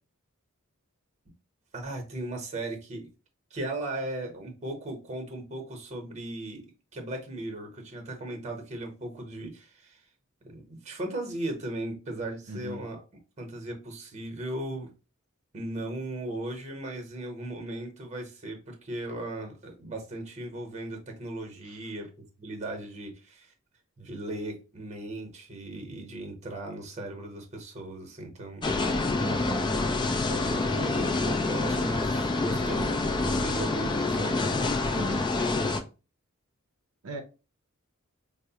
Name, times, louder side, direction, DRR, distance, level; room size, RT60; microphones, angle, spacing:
voice 1, 1.7-3.1 3.5-6.7 6.9-10.0 10.4-13.0 13.4-14.9 15.5-22.1 22.4-23.5 24.0-28.7 30.2-32.9 33.2-34.5, right 1 dB, 35° right, 0.9 m, -37 dB
voice 2, 12.5-12.8 21.6-21.8 29.2-29.7 35.0-35.3 37.0-37.2, right 1 dB, 80° right, 0.6 m, -38 dB
sound 1, 28.6-35.8, left 3 dB, 20° left, 0.3 m, -27 dB
4.5 x 2.0 x 2.8 m
head